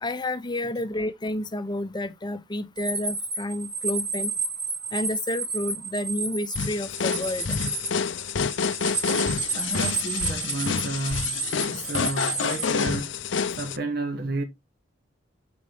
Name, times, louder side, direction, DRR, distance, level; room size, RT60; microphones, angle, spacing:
voice 1, 0.0-4.3 4.9-7.6, left 1 dB, 25° left, 0.7 m, -30 dB
sound 1, 2.8-12.7, right 3 dB, 40° right, 2.0 m, -31 dB
sound 2, 6.6-13.8, left 6 dB, 80° left, 0.6 m, -28 dB
voice 2, 9.0-13.1 13.6-14.4, right 2 dB, 55° right, 1.1 m, -32 dB
8.3 x 4.5 x 3.4 m
head